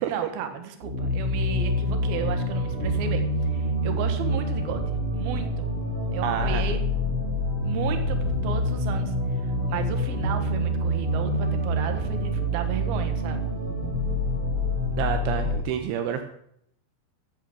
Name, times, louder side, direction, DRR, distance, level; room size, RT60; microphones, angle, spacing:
voice 1, 0.1-4.8 5.1-5.8 6.1-6.8 7.6-9.4 9.7-13.4, right 8 dB, 60° right, 7 dB, 2.8 m, -34 dB
sound 1, 0.8-15.6, equal, 35° right, 0.9 m, -26 dB
voice 2, 6.2-6.6 15.0-16.2, right 9 dB, 80° right, 7 dB, 3.1 m, -28 dB
14.0 x 9.1 x 6.4 m, 0.72 s
omnidirectional pair, 5.8 m